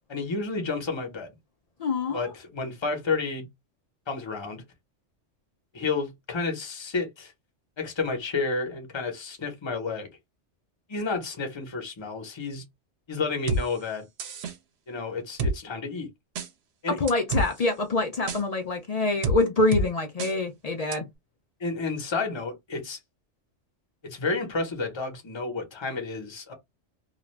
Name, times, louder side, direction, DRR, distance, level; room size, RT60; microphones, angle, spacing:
voice 1, 0.1-1.3 2.1-3.5 4.1-4.6 5.7-7.3 7.8-10.1 10.9-12.6 13.1-14.0 14.9-16.1 16.8-17.0 21.6-23.0 24.0-26.5, left 4 dB, 25° left, 0.8 m, -31 dB
voice 2, 1.8-2.3 16.9-21.1, left 3 dB, 70° left, 0.3 m, -25 dB
sound 1, 13.5-13.6 14.2-14.5 15.4-15.5 16.4-16.5 17.1-17.5 18.3-18.4 19.2-19.4 19.7-19.9 20.2-20.3 20.9-21.0, right 2 dB, 65° right, 0.8 m, -26 dB
2.4 x 2.1 x 3.1 m
omnidirectional pair, 1.3 m